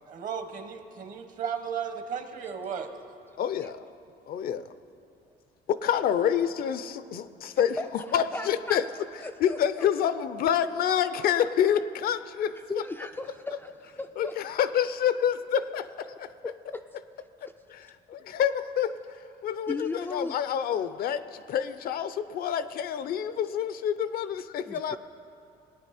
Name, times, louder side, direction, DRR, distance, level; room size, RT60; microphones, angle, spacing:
voice 1, 0.1-2.9, right 7 dB, 50° right, 7 dB, 1.1 m, -35 dB
voice 2, 3.4-3.8 4.3-4.6 5.7-7.8 8.1-8.8 9.4-12.5 14.2-16.3 17.7-18.9 19.4-25.0, left 9 dB, 60° left, 13 dB, 0.5 m, -27 dB
voice 3, 7.8-9.9 12.5-14.4 16.4-16.8 17.4-17.5 19.7-20.4 24.7-25.0, left 2 dB, 10° left, 5 dB, 0.3 m, -37 dB
19.0 x 9.2 x 4.2 m, 2.6 s
cardioid pair, 110°, 17 cm